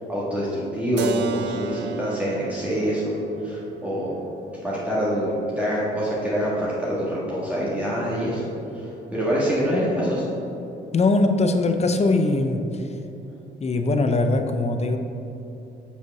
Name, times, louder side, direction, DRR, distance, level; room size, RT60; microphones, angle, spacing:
voice 1, 0.1-3.1 3.4-4.1 4.6-8.4 9.1-10.3, equal, 5° right, -8 dB, 1.6 m, -25 dB
Keyboard (musical), 1.0-6.6, right 7 dB, 60° right, 0.6 m, -34 dB
voice 2, 10.9-12.9 13.6-15.0, left 2 dB, 35° left, 7 dB, 0.6 m, -21 dB
5.5 x 4.7 x 5.8 m, 2.8 s
cardioid pair, 90°, 20 cm